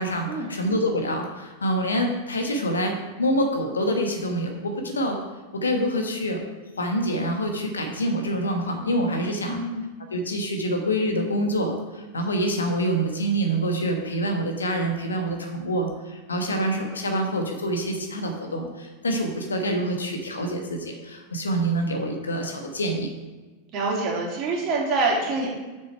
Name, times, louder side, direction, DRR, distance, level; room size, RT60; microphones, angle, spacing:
voice 1, 0.0-5.2 5.5-6.4 6.8-9.6 10.1-23.1, equal, 75° left, 3 dB, 1.2 m, -26 dB
voice 2, 9.5-9.9 23.7-25.5, right 3 dB, 35° right, -2 dB, 2.4 m, -25 dB
7.0 x 6.1 x 4.5 m, 1.2 s
figure-of-eight pair, 90°, 0 cm